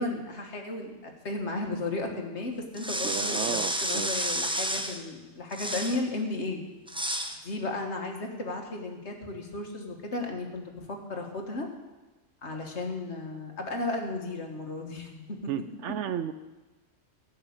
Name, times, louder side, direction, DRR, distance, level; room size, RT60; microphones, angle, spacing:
voice 1, 0.0-6.6 7.4-11.7 12.4-15.4, left 2 dB, 55° left, 3 dB, 1.8 m, -34 dB
sound 1, 2.7-5.0 5.5-6.0 6.9-7.4, right 1 dB, 5° right, 0.5 m, -30 dB
voice 2, 3.0-4.1 15.5-16.3, right 9 dB, 70° right, 11 dB, 0.8 m, -33 dB
14.5 x 5.6 x 8.7 m, 1.2 s
omnidirectional pair, 1.4 m